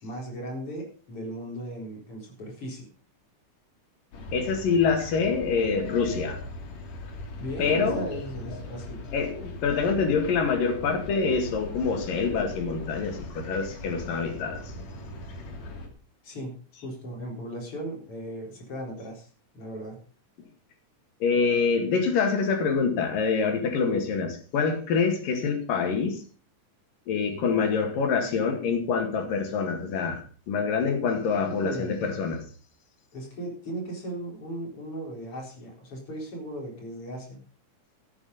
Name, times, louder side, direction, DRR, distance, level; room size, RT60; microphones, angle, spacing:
voice 1, 0.0-2.9 7.4-9.0 16.2-16.5 16.8-19.3 19.5-20.0 31.6-32.0 33.1-37.4, right 1 dB, 40° left, 0 dB, 4.9 m, -37 dB
sound 1, 4.1-15.9, left 1 dB, 55° left, 3.4 m, -40 dB
voice 2, 4.3-6.4 7.6-8.1 9.1-14.6 21.2-26.2 27.1-32.4, left 5 dB, 90° left, 5 dB, 3.8 m, -26 dB
13.5 x 8.9 x 5.3 m, 0.40 s
omnidirectional pair, 3.8 m